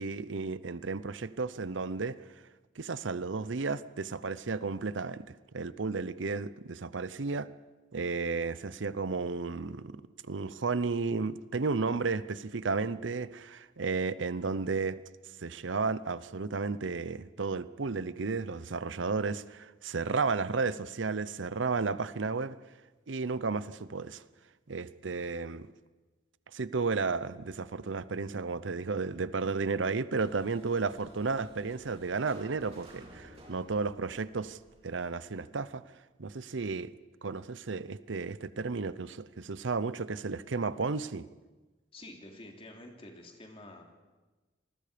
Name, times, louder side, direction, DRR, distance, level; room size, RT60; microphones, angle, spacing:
voice 1, 0.0-2.2 2.8-5.3 5.5-7.5 7.9-10.0 10.3-15.0 15.4-22.6 23.1-24.2 24.7-25.7 26.5-34.6 34.8-35.8 36.2-36.9 37.2-41.3, right 4 dB, 85° right, 16 dB, 0.7 m, -33 dB
sound 1, 30.2-35.4, right 1 dB, 35° right, 5.0 m, -55 dB
voice 2, 41.9-43.9, left 1 dB, 30° left, 2 dB, 3.1 m, -49 dB
27.0 x 20.5 x 5.1 m, 1.2 s
head